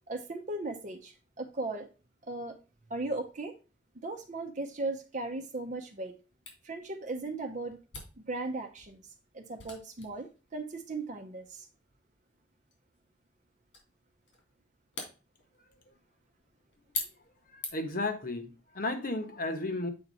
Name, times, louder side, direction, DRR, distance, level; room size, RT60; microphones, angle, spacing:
voice 1, 0.1-1.9 2.2-2.6 2.9-3.6 4.0-6.2 6.6-7.8 8.3-11.7, right 2 dB, 45° right, 0.7 m, -37 dB
Camera, 6.5-18.1, left 3 dB, 85° left, 3.1 m, -46 dB
voice 2, 17.5-19.9, left 2 dB, 50° left, 1.3 m, -34 dB
8.1 x 4.2 x 4.0 m
head